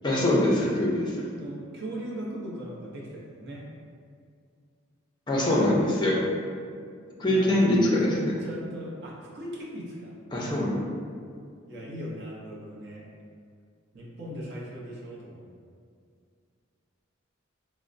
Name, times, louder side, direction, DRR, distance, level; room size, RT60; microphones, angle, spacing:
voice 1, 0.0-1.2 5.3-6.2 7.2-8.3 10.3-10.8, left 1 dB, 20° left, -4 dB, 0.4 m, -23 dB
voice 2, 1.3-3.7 7.1-10.8 11.7-13.0 13.9-15.5, equal, 55° right, -5 dB, 0.6 m, -39 dB
4.1 x 2.0 x 2.5 m, 2.2 s
head